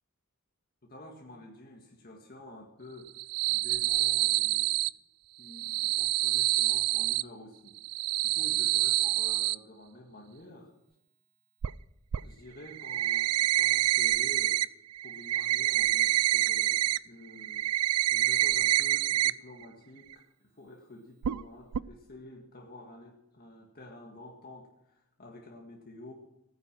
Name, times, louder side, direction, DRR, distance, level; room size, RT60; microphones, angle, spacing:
voice 1, 0.8-3.1 3.5-4.8 5.4-7.8 8.2-10.7 12.2-14.6 15.0-17.7 18.1-26.1, left 1 dB, 45° left, 0 dB, 1.8 m, -49 dB
sound 1, 3.1-4.9 5.5-7.2 7.8-9.6 11.6-11.7 12.1-12.2 12.7-14.7 14.9-17.0 17.3-19.3 19.6-19.7 20.1-20.2 21.2-21.4 21.7-21.8, right 14 dB, 85° right, 0.4 m, -27 dB
18.0 x 9.9 x 6.0 m, 0.82 s
head